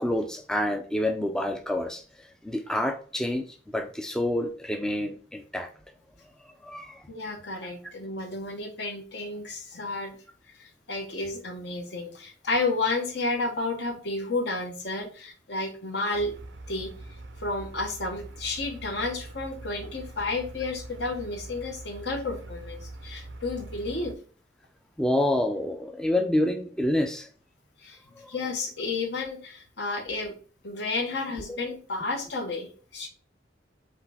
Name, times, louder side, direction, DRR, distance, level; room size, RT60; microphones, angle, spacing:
voice 1, 0.0-2.0 2.4-3.4 3.7-5.7 6.6-7.0 25.0-27.3, left 1 dB, 5° left, 6 dB, 0.4 m, -27 dB
voice 2, 7.1-10.2 10.6-16.3 16.7-16.9 17.4-24.1 27.8-28.0 28.3-30.3 30.6-33.1, left 3 dB, 65° left, 4 dB, 1.0 m, -31 dB
sound 1, 16.1-24.1, right 2 dB, 75° right, 0.5 m, -43 dB
4.9 x 3.2 x 3.4 m, 0.40 s
head